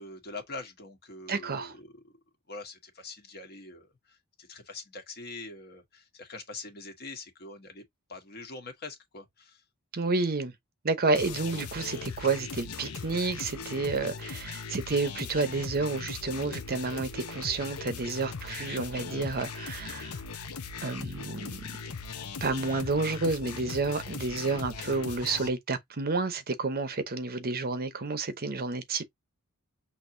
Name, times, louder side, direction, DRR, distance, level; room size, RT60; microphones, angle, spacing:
voice 1, 0.0-2.2 2.5-7.8 8.1-9.6, left 3 dB, 45° left, 1.4 m, -44 dB
voice 2, 1.3-1.7 9.9-10.5 10.8-20.2 20.8-21.6 22.4-29.0, right 3 dB, 45° right, 0.8 m, -30 dB
sound 1, 11.1-25.5, left 5 dB, 80° left, 0.8 m, -39 dB
6.2 x 3.0 x 2.6 m
head